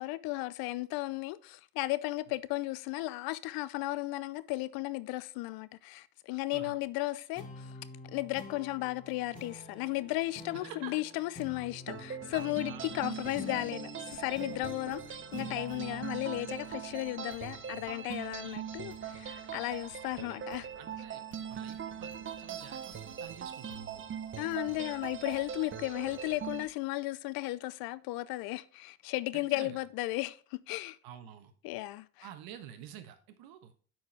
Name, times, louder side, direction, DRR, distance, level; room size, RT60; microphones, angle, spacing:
voice 1, 0.0-7.7 8.1-20.7 24.4-31.0 31.6-32.3, left 19 dB, 65° left, 0.6 m, -35 dB
sound 1, 7.4-18.2, left 2 dB, 20° left, 2.4 m, -48 dB
sound 2, 11.9-26.7, right 8 dB, 30° right, 0.8 m, -41 dB
voice 2, 12.6-13.0 20.8-21.2 21.5-24.0 29.3-29.8 31.0-31.5 32.2-33.7, right 10 dB, 65° right, 1.3 m, -49 dB
sound 3, 14.1-26.8, left 6 dB, 90° left, 1.2 m, -61 dB
9.5 x 4.7 x 3.4 m
hypercardioid pair, 70°, 39 cm